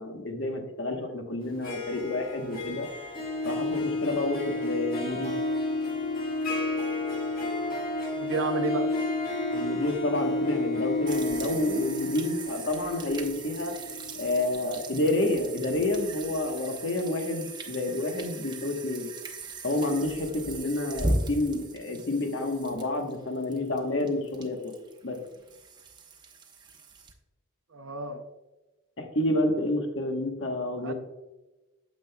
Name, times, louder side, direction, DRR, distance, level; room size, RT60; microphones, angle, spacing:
voice 1, 0.0-2.9 3.4-5.4 9.5-13.8 14.2-19.1 19.6-24.7 25.0-25.2 29.0-30.9, left 2 dB, 60° left, 4 dB, 1.1 m, -29 dB
Harp, 1.4-15.4, left 2 dB, 45° left, 1.6 m, -31 dB
voice 2, 8.1-8.9 27.7-28.2 30.8-30.9, right 3 dB, 75° right, 6 dB, 0.6 m, -31 dB
sound 1, 11.1-27.1, right 2 dB, 20° right, 0.7 m, -38 dB
9.1 x 7.5 x 2.2 m, 1.1 s
head